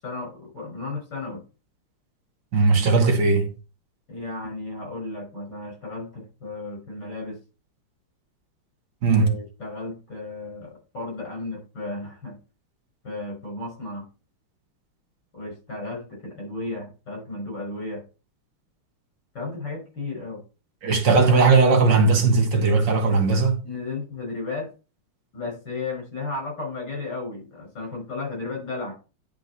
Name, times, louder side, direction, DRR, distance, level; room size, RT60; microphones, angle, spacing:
voice 1, 0.0-1.4 4.1-7.4 9.1-12.4 13.0-14.1 15.3-18.0 19.3-20.4 23.6-24.7 25.3-28.9, left 3 dB, 55° left, 6.0 m, -34 dB
voice 2, 2.5-3.5 9.0-9.4 20.8-23.6, right 4 dB, 60° right, 2.2 m, -18 dB
10.5 x 5.1 x 4.1 m
omnidirectional pair, 2.4 m